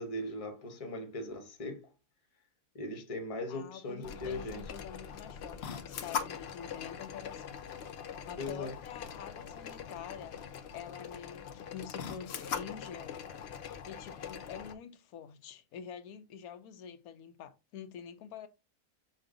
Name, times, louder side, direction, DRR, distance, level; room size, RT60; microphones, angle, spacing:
voice 1, 0.0-1.9 2.7-4.7 8.4-8.7, left 1 dB, 30° left, 0.8 m, -39 dB
voice 2, 3.5-7.6 8.3-13.2 13.8-18.5, left 8 dB, 90° left, 1.1 m, -47 dB
sound 1, 4.0-14.7, left 7 dB, 60° left, 0.7 m, -42 dB
5.3 x 2.4 x 3.7 m
omnidirectional pair, 1.5 m